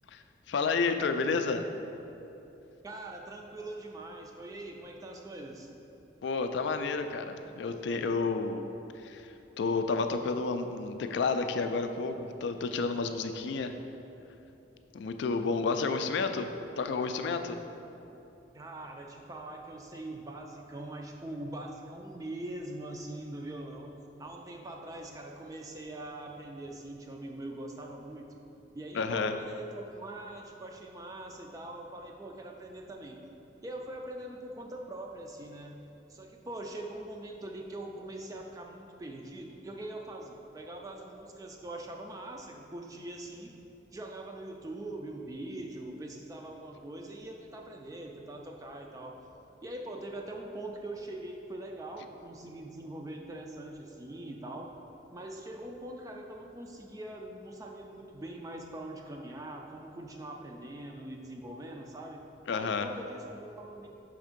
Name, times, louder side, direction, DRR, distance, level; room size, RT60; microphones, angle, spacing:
voice 1, 0.1-1.6 6.2-8.7 9.0-9.3 9.6-13.7 14.9-16.5 16.8-17.6 28.9-29.4 62.5-62.9, left 4 dB, 65° left, 8 dB, 0.3 m, -30 dB
voice 2, 2.8-5.7 18.5-23.9 24.2-28.3 28.7-33.2 33.6-35.8 36.1-43.5 43.9-49.2 49.6-54.7 55.1-62.2 62.5-63.9, right 1 dB, 20° right, 1 dB, 0.3 m, -42 dB
5.6 x 3.5 x 5.1 m, 2.9 s
head